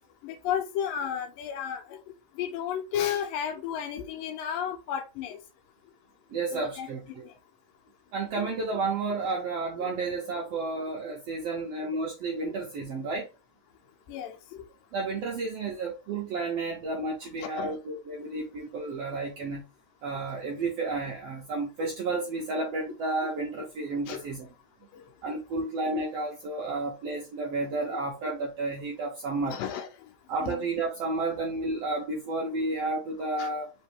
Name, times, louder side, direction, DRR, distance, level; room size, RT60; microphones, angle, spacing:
voice 1, 0.2-2.0 2.4-5.4 6.5-6.9 8.4-8.5 9.8-9.9 14.1-14.6 17.4-17.8 24.1-24.2 24.9-25.0 25.6-25.7 29.5-29.9 30.4-30.6 33.4-33.5, left 9 dB, 85° left, 2.3 m, -33 dB
voice 2, 6.3-7.2 8.1-13.3 14.9-19.6 20.0-24.5 25.2-29.6 30.3-33.7, right 3 dB, 85° right, 1.4 m, -31 dB
5.1 x 3.1 x 3.3 m
omnidirectional pair, 4.1 m